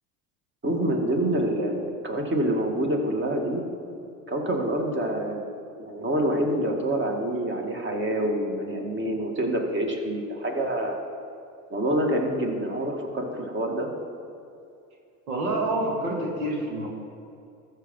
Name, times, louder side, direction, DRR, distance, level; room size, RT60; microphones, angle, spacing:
voice 1, 0.6-3.6 4.3-5.4 5.8-11.0 11.7-13.9, right 1 dB, 25° right, 3 dB, 1.9 m, -26 dB
voice 2, 15.3-16.9, right 1 dB, 85° right, -1 dB, 1.9 m, -27 dB
14.0 x 6.1 x 5.4 m, 2.5 s
hypercardioid pair, 75°, 42 cm